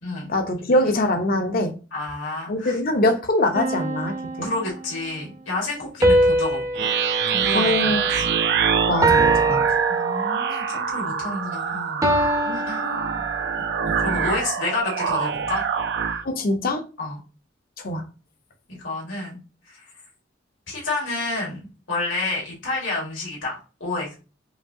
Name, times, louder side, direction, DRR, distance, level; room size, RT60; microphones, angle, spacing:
voice 1, 0.3-1.7 2.5-4.5 7.5-8.3 8.9-9.8 10.5-10.6 12.4-13.0 13.8-13.9 16.2-16.8 17.8-18.0, left 1 dB, 50° left, 6 dB, 0.8 m, -23 dB
voice 2, 1.9-2.8 4.4-6.6 7.3-8.2 9.9-12.1 12.5-12.8 14.0-15.6 17.0-17.2 18.7-19.4 19.7-19.8 20.7-24.1, left 2 dB, 80° left, -3 dB, 2.2 m, -29 dB
sound 1, 3.5-5.0 6.0-8.5 9.0-10.6 12.0-13.7, right 1 dB, 20° right, 0.6 m, -23 dB
sound 2, 6.7-16.2, right 7 dB, 60° right, 0.4 m, -25 dB
5.1 x 2.8 x 2.7 m, 0.33 s
head